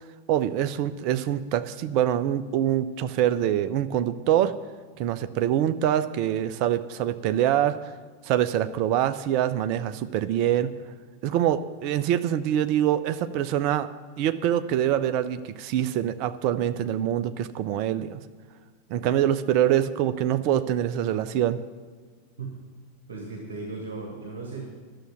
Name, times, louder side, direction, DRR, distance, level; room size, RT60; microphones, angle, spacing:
voice 1, 0.3-4.6 5.0-7.9 8.2-10.7 11.2-13.9 14.2-18.2 18.9-21.6, right 11 dB, 45° right, 12 dB, 0.6 m, -25 dB
voice 2, 23.1-24.7, right 3 dB, 65° right, 0 dB, 1.8 m, -36 dB
11.5 x 6.9 x 8.9 m, 1.5 s
figure-of-eight pair, 90°, 0 cm